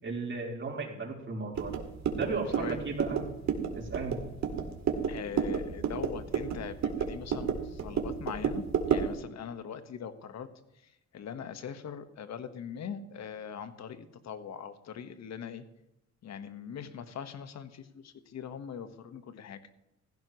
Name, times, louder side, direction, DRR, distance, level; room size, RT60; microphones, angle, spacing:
voice 1, 0.0-1.7 2.1-3.2 3.7-4.2, right 4 dB, 40° right, -1 dB, 3.8 m, -35 dB
sound 1, 1.5-9.2, right 7 dB, 65° right, 2.2 m, -31 dB
voice 2, 5.1-10.5 11.1-15.6 16.2-19.6, left 7 dB, 60° left, 9 dB, 1.4 m, -41 dB
16.5 x 16.0 x 3.1 m, 0.85 s
cardioid pair, 90°, 30 cm